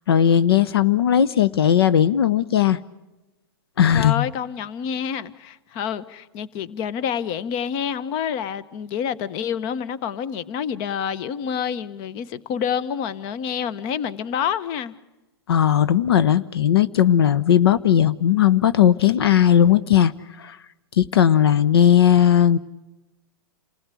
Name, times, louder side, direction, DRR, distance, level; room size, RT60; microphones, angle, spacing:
voice 1, 0.1-2.8 3.8-4.3 15.5-20.1 20.4-20.6 21.0-22.6, left 10 dB, 75° left, 0.8 m, -17 dB
voice 2, 3.9-14.9, left 8 dB, 40° left, 1.0 m, -28 dB
27.5 x 16.0 x 8.3 m
hypercardioid pair, 135°, 13 cm